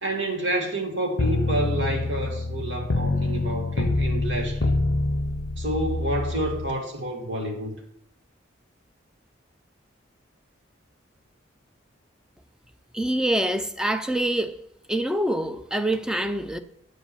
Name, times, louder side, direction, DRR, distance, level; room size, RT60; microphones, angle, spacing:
voice 1, 0.0-4.8 5.6-7.7, right 1 dB, 75° right, 2.2 m, -29 dB
sound 1, 1.2-6.7, left 2 dB, 60° left, 0.5 m, -26 dB
voice 2, 12.9-14.6 14.9-16.6, right 1 dB, 5° right, 0.4 m, -25 dB
9.1 x 5.1 x 7.1 m
head